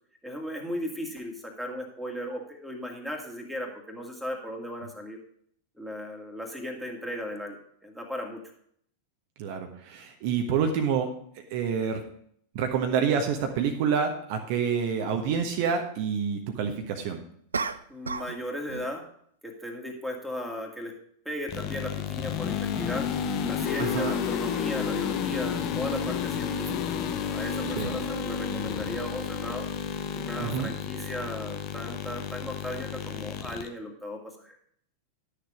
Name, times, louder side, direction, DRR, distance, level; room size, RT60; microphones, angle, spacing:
voice 1, 0.2-5.2 5.8-7.6 7.8-8.4 17.9-19.0 19.4-20.9 21.3-23.1 23.4-26.7 27.3-29.7 30.1-34.6, left 1 dB, ahead, 1 dB, 2.2 m, -36 dB
voice 2, 9.4-11.1 11.5-12.0 12.5-17.2 23.8-24.2 27.8-27.9 30.4-30.7, right 6 dB, 45° right, 4 dB, 1.2 m, -27 dB
sound 1, 13.5-13.6 17.5-18.4 18.7-19.0, right 4 dB, 75° right, 0.5 m, -33 dB
sound 2, 21.5-33.7, left 7 dB, 40° left, 1.1 m, -31 dB
11.5 x 6.8 x 5.0 m, 0.64 s
figure-of-eight pair, 90°, 0 cm